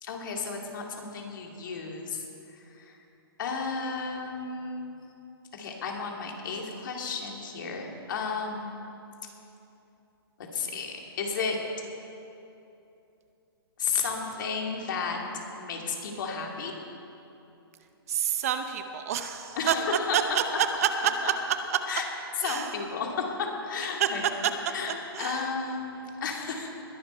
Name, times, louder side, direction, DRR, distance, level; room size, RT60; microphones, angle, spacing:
voice 1, 0.0-2.2 2.7-3.0 3.4-4.9 5.6-8.8 10.5-11.6 13.8-15.2 15.6-16.7 19.6-20.2 21.9-22.1 22.4-24.2 24.7-26.7, left 5 dB, 55° left, 1 dB, 2.6 m, -33 dB
voice 2, 18.1-19.7 20.1-21.3 21.7-21.8 22.4-22.7 24.0-24.1 25.1-25.4, right 9 dB, 35° right, 8 dB, 0.7 m, -27 dB
21.0 x 11.0 x 4.5 m, 2.8 s
hypercardioid pair, 165°, 13 cm